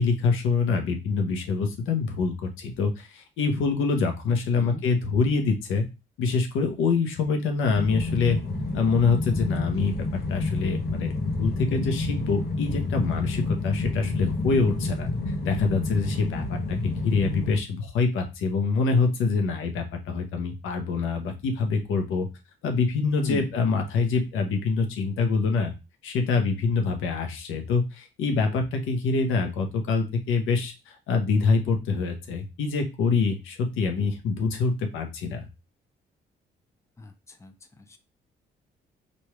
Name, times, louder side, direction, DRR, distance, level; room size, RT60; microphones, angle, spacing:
voice 1, 0.0-5.8 6.2-8.4 8.7-9.9 10.3-11.1 11.4-22.3 22.6-25.7 26.0-35.5, left 4 dB, 85° left, 5 dB, 0.9 m, -25 dB
sound 1, 7.7-17.6, left 2 dB, 50° left, 0.8 m, -29 dB
voice 2, 23.2-23.6 37.0-38.0, left 3 dB, 15° left, 6 dB, 0.6 m, -36 dB
3.2 x 2.6 x 4.5 m, 0.26 s
cardioid pair, 90°, 20 cm